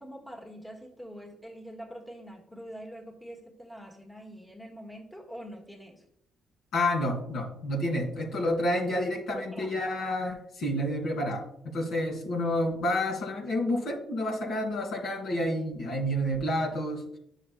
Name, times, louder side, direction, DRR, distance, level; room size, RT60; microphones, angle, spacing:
voice 1, 0.0-6.0 9.3-9.8, equal, 5° left, 0 dB, 1.6 m, -44 dB
voice 2, 6.7-17.2, left 1 dB, 75° left, -1 dB, 2.4 m, -29 dB
9.8 x 6.5 x 2.2 m, 0.76 s
cardioid pair, 90°, 0 cm